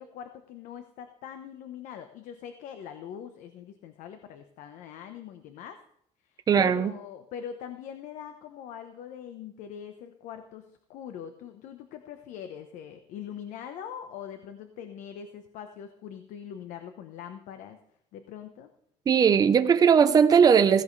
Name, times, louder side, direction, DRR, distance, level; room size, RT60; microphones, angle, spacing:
voice 1, 0.0-5.8 6.2-17.8 18.1-18.7, left 8 dB, 80° left, 1.1 m, -42 dB
voice 2, 6.5-6.9 19.1-20.8, right 7 dB, 30° right, 0.8 m, -19 dB
16.0 x 16.0 x 3.3 m
cardioid pair, 145°, 13 cm